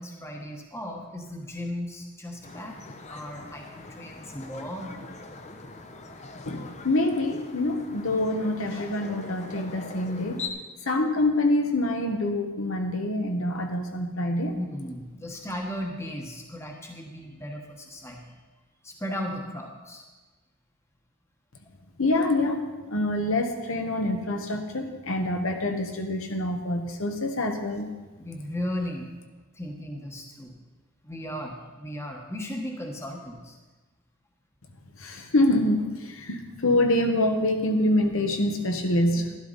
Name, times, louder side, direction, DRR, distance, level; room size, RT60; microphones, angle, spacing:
voice 1, 0.0-2.7 3.1-5.1 14.5-18.4 18.8-20.0 28.2-29.1 29.5-30.5 31.0-33.6, left 1 dB, 10° left, 1 dB, 1.2 m, -36 dB
sound 1, 2.4-10.5, left 3 dB, 30° left, 0.7 m, -42 dB
voice 2, 6.5-10.5 10.8-14.5 22.0-27.9 35.0-39.2, left 1 dB, 70° left, 4 dB, 1.2 m, -26 dB
12.0 x 12.0 x 4.0 m, 1.2 s
head